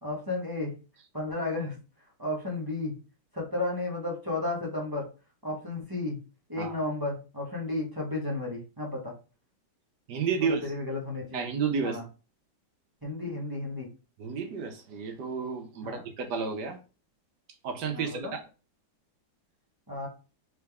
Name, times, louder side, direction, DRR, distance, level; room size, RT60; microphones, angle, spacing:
voice 1, 0.0-0.7 1.1-1.8 2.2-2.9 3.3-5.0 5.4-6.2 6.5-9.1 10.4-11.4 11.8-12.0 13.0-13.9 15.8-16.0 17.9-18.3 19.9-20.1, left 2 dB, 15° right, -3 dB, 1.0 m, -33 dB
voice 2, 10.1-10.7 11.3-12.0 14.2-16.8 17.6-18.4, right 5 dB, 70° right, 5 dB, 1.3 m, -31 dB
3.9 x 3.5 x 3.5 m, 0.33 s
omnidirectional pair, 2.0 m